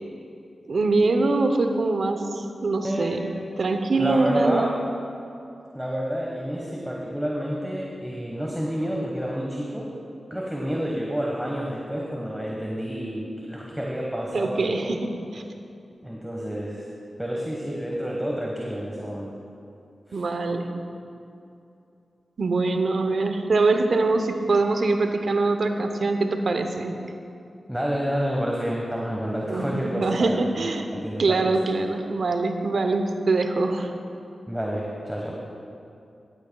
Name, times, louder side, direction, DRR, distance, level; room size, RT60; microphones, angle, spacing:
voice 1, 0.7-3.3 3.6-4.7 14.3-15.4 20.1-20.8 22.4-27.0 29.5-30.9 31.2-33.9, right 3 dB, 70° right, 6 dB, 0.8 m, -23 dB
voice 2, 2.8-3.5 4.0-4.8 5.7-9.9 10.3-14.9 16.0-16.9 17.2-19.3 20.1-20.2 27.7-31.6 34.5-35.3, equal, 5° right, -2 dB, 1.3 m, -29 dB
13.5 x 11.5 x 2.3 m, 2.6 s
cardioid pair, 45°, 0 cm